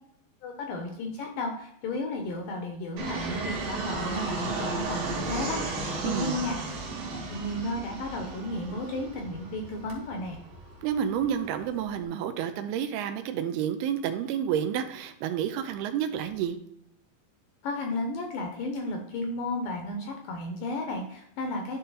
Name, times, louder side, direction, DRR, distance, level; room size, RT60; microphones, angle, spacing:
voice 1, 0.4-5.6 6.0-6.7 7.1-10.4 17.6-21.8, left 2 dB, 75° left, 3 dB, 2.1 m, -33 dB
Fixed-wing aircraft airplane, 3.0-12.0, right 3 dB, 65° right, 3.1 m, -35 dB
voice 2, 6.0-6.4 10.8-16.6, right 9 dB, 85° right, 8 dB, 2.6 m, -30 dB
10.5 x 3.8 x 4.0 m, 0.74 s
omnidirectional pair, 4.7 m